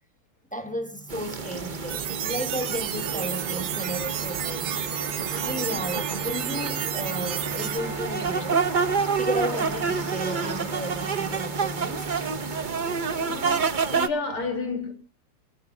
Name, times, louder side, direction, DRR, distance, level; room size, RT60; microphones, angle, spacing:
voice 1, 0.5-4.7 5.4-8.7 9.2-12.1, equal, 5° left, 1.0 m, -34 dB
sound 1, 0.6-12.7, right 1 dB, 15° right, 1.6 m, -39 dB
sound 2, 1.1-14.1, right 5 dB, 65° right, 0.4 m, -29 dB
sound 3, 1.9-7.8, right 11 dB, 90° right, 1.8 m, -32 dB
voice 2, 13.3-14.9, left 4 dB, 85° left, 4.8 m, -31 dB
25.5 x 13.5 x 2.8 m
omnidirectional pair, 2.3 m